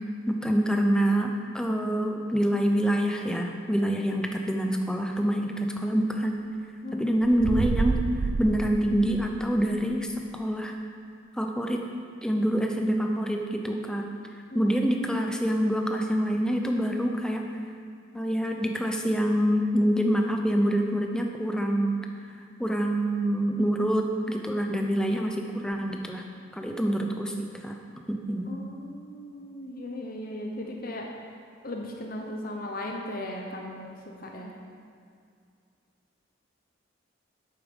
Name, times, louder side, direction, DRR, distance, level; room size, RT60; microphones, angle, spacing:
voice 1, 0.3-6.4 6.9-8.1 8.4-10.7 11.4-11.8 12.2-14.0 14.5-17.5 18.1-22.0 22.6-26.2 26.5-27.8 28.1-28.6, equal, 5° left, 2 dB, 0.7 m, -26 dB
voice 2, 6.8-7.2 14.5-14.7 24.5-24.9 28.5-31.0 31.6-34.0 34.2-34.5, left 1 dB, 45° left, 1 dB, 1.0 m, -37 dB
sound 1, 7.2-9.7, right 3 dB, 90° right, 0.4 m, -29 dB
8.5 x 8.5 x 5.3 m, 2.3 s
head